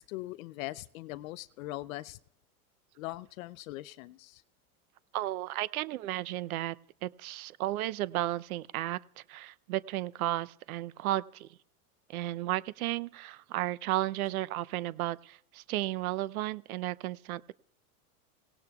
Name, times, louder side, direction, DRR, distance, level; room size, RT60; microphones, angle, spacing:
voice 1, 0.0-2.2 3.0-4.4, left 17 dB, 65° left, 0.6 m, -41 dB
voice 2, 5.1-9.0 9.3-11.5 12.1-17.5, right 15 dB, 70° right, 0.7 m, -33 dB
25.5 x 18.0 x 2.3 m
supercardioid pair, 125°, 45 cm